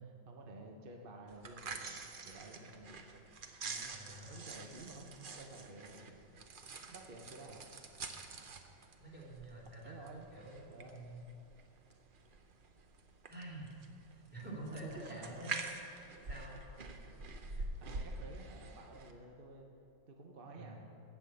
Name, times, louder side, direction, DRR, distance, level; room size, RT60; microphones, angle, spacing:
voice 1, 0.0-3.0 3.6-6.2 6.8-7.7 9.8-10.3 10.7-11.0 14.8-15.7 17.8-19.7 20.1-20.8, right 2 dB, 40° right, 1 dB, 0.9 m, -52 dB
sound 1, 1.3-19.1, right 3 dB, 65° right, 0.5 m, -47 dB
voice 2, 3.9-4.4 9.0-10.0 10.3-11.2 13.3-13.7 14.1-15.6 16.3-16.6 17.5-17.6 20.6-20.8, right 1 dB, 5° right, -5 dB, 2.6 m, -48 dB
14.5 x 5.9 x 8.3 m, 2.8 s
omnidirectional pair, 2.1 m